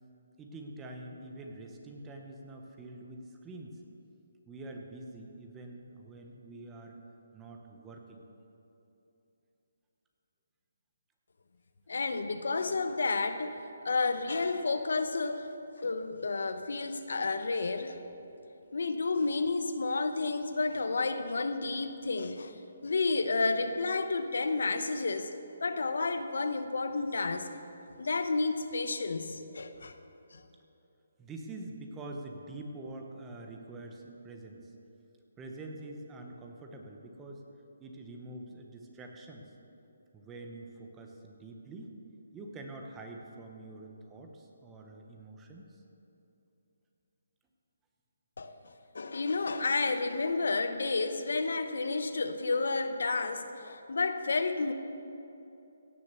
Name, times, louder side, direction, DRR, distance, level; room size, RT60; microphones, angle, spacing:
voice 1, 0.4-3.8 4.5-7.0 7.3-8.2 31.2-34.7 35.4-37.4 37.8-39.5 40.1-41.9 42.3-45.8, right 2 dB, 10° right, 2 dB, 1.0 m, -45 dB
voice 2, 11.9-13.6 13.8-15.5 15.8-18.0 18.7-22.5 22.8-25.3 25.6-27.5 28.0-29.9 30.3-30.4 48.4-54.7, left 3 dB, 75° left, 9 dB, 0.8 m, -31 dB
17.0 x 6.6 x 6.8 m, 2.9 s
hypercardioid pair, 165°, 0 cm